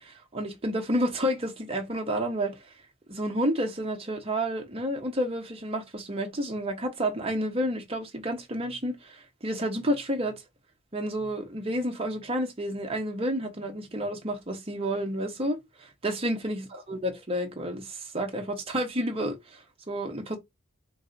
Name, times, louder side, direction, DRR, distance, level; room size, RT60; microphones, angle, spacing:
voice 1, 0.0-2.6 3.1-10.3 10.9-19.4 19.9-20.4, equal, 30° right, 0.8 m, -30 dB
3.3 x 2.6 x 3.8 m
head